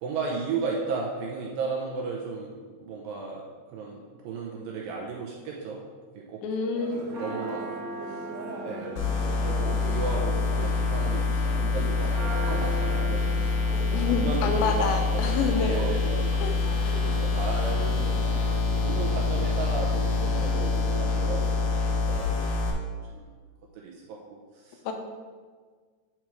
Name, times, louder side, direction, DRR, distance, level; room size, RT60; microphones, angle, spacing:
voice 1, 0.0-5.9 6.1-6.4 6.9-7.7 8.0-8.2 8.6-9.0 9.4-13.5 14.1-16.5 16.9-18.3 18.8-21.5 21.7-22.7 23.1-23.3 23.7-24.8, right 4 dB, 80° right, -2 dB, 2.1 m, -35 dB
voice 2, 6.4-7.1 13.9-15.8 16.4-16.5 16.8-17.0 24.9-25.0, left 5 dB, 85° left, 4 dB, 3.0 m, -28 dB
Church bell, 6.7-21.7, right 1 dB, 50° right, 2.3 m, -39 dB
sound 1, 9.0-22.7, left 3 dB, 65° left, 2.6 m, -26 dB
8.6 x 4.6 x 4.6 m, 1.5 s
omnidirectional pair, 5.0 m